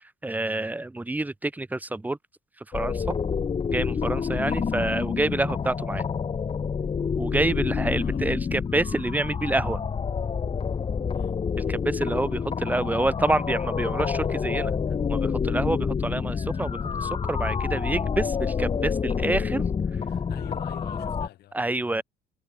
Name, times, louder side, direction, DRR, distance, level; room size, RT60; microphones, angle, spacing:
voice 1, 0.2-2.2 2.7-3.0 3.7-6.0 7.2-9.8 11.7-14.7 15.1-19.7 21.5-22.0, right 2 dB, 10° right, 0.9 m, -27 dB
sound 1, 2.7-21.3, left 6 dB, 35° left, 2.4 m, -28 dB
voice 2, 4.4-4.7 7.9-8.5 11.1-11.4 20.1-21.6 21.9-22.0, left 14 dB, 70° left, 7.7 m, -48 dB
cardioid pair, 110°, 17 cm